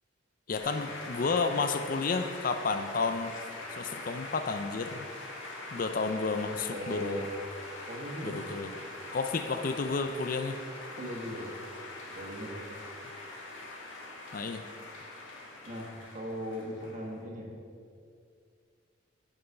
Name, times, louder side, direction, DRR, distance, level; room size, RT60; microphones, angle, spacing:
voice 1, 0.5-3.4 3.7-5.1 5.7-7.3 8.2-8.7 9.1-10.6 14.3-14.6, left 4 dB, 45° left, 8 dB, 0.4 m, -31 dB
sound 1, 0.6-17.2, left 2 dB, 85° left, 1.8 m, -43 dB
voice 2, 6.7-7.3 7.9-8.4 10.9-11.5 12.1-12.7 15.6-15.9 16.1-17.5, equal, 40° right, -2 dB, 1.7 m, -38 dB
9.9 x 5.4 x 5.6 m, 2.3 s
head